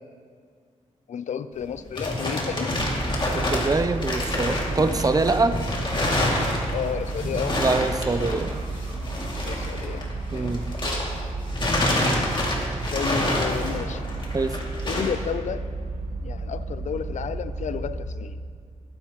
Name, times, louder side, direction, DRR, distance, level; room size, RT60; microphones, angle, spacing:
voice 1, 1.1-2.8 6.7-7.6 9.4-10.5 12.9-14.0 14.8-15.6 16.2-18.4, left 7 dB, 65° left, 13 dB, 0.5 m, -32 dB
sound 1, 1.6-11.2 11.5-15.2, left 1 dB, 40° left, 2.5 m, -27 dB
sound 2, 2.7-18.0, right 3 dB, 90° right, 1.4 m, -32 dB
voice 2, 3.3-5.6 7.6-8.6 10.3-10.6 14.3-14.6, right 3 dB, 30° right, 10 dB, 0.6 m, -24 dB
19.0 x 9.9 x 3.1 m, 2.1 s
cardioid pair, 75°, 13 cm